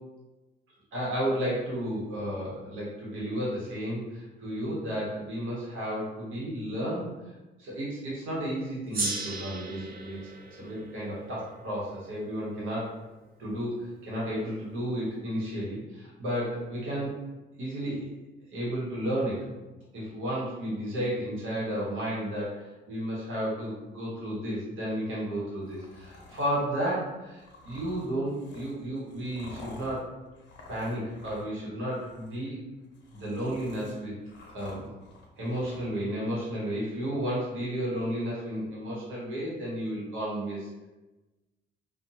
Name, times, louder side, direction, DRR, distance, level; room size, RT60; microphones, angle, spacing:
voice 1, 0.9-7.0 7.6-12.9 13.4-17.1 17.6-18.1 18.5-19.4 19.9-30.1 30.7-32.6 33.1-34.1 34.5-34.9 35.4-40.9, equal, 90° right, -6 dB, 1.2 m, -32 dB
Gong, 8.9-13.7, right 3 dB, 50° right, 0.7 m, -38 dB
sound 1, 25.6-26.6 27.4-31.7 31.9-32.4 32.8-35.8, left 2 dB, 65° left, 0.7 m, -49 dB
2.6 x 2.3 x 2.8 m, 1.1 s
cardioid pair, 90°, 20 cm